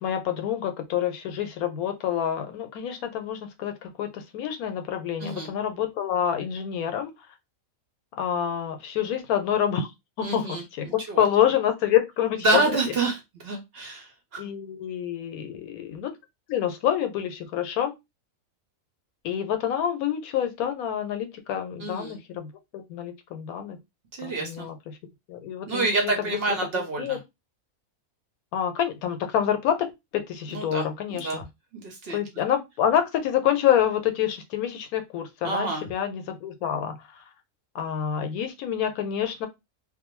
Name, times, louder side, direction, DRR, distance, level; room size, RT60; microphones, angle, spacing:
voice 1, 0.0-7.1 8.2-9.9 10.2-12.6 14.4-16.1 16.5-17.9 19.2-23.8 24.2-25.0 25.3-26.1 26.7-27.2 28.5-31.5 32.1-37.2 37.7-39.5, left 9 dB, 85° left, 1.0 m, -27 dB
voice 2, 10.2-11.2 12.4-14.4 21.8-22.2 24.1-24.7 25.7-27.2 30.5-31.4 31.7-32.2 35.4-35.8, right 3 dB, 55° right, 0.8 m, -28 dB
2.6 x 2.0 x 3.0 m
omnidirectional pair, 1.5 m